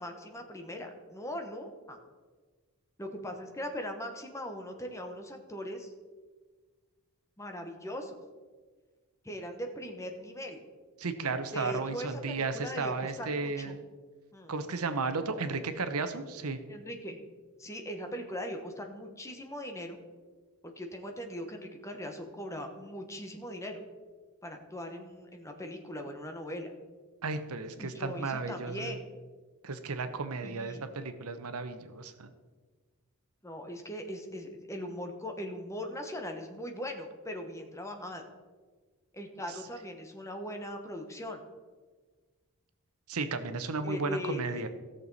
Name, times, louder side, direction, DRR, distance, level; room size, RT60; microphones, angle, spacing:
voice 1, 0.0-2.0 3.0-5.9 7.4-8.2 9.2-10.6 11.5-13.8 14.3-14.5 16.7-17.2 17.6-20.0 20.6-23.8 24.4-26.7 27.8-29.1 30.4-30.9 33.4-38.3 39.1-41.4 43.8-44.6, equal, 15° left, 4 dB, 1.1 m, -40 dB
voice 2, 11.0-13.7 14.5-16.6 27.2-29.0 29.6-32.3 43.1-44.7, right 4 dB, 80° right, 9 dB, 0.9 m, -34 dB
17.0 x 6.8 x 4.1 m, 1.4 s
head